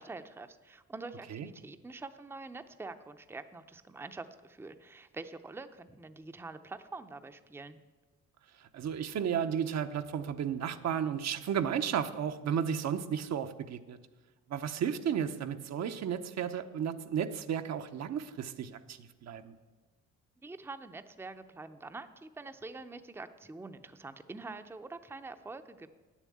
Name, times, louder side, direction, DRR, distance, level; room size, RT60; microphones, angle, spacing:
voice 1, 0.0-7.8 20.4-25.9, right 3 dB, 10° right, 9 dB, 0.6 m, -45 dB
voice 2, 8.7-14.0 14.5-19.5, right 8 dB, 60° right, 9 dB, 0.8 m, -33 dB
9.3 x 7.3 x 8.4 m, 1.2 s
cardioid pair, 90°, 30 cm